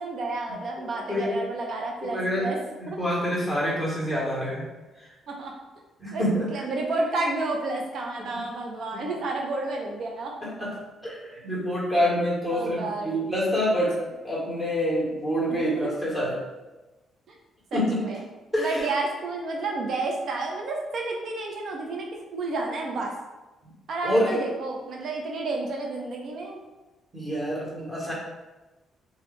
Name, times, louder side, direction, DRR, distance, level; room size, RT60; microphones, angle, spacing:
voice 1, 0.0-2.6 2.9-3.0 5.3-5.5 6.1-6.2 6.5-10.3 12.5-13.3 15.5-15.9 17.3-17.4 17.7-18.2 18.6-23.1 23.9-26.6, right 2 dB, 60° right, 1 dB, 0.7 m, -31 dB
voice 2, 2.0-2.5 3.0-4.7 6.0-6.5 10.4-10.7 11.0-14.0 14.2-16.4 17.7-18.0 18.5-18.9 24.0-24.4 27.1-28.1, equal, 5° right, -6 dB, 1.5 m, -26 dB
2.9 x 2.4 x 3.4 m, 1.1 s
cardioid pair, 90°, 0 cm